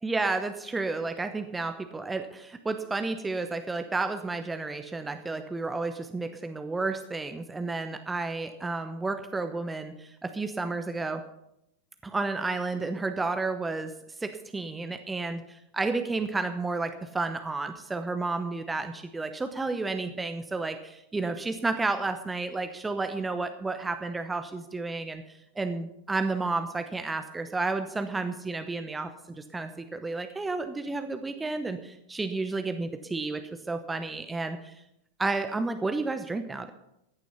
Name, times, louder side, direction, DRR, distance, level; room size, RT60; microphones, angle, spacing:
voice 1, 0.0-11.2 12.0-13.9 14.2-33.4 33.7-34.7 35.2-36.7, right 3 dB, 10° right, 8 dB, 1.0 m, -31 dB
15.0 x 10.5 x 5.7 m, 0.82 s
figure-of-eight pair, 90°, 0 cm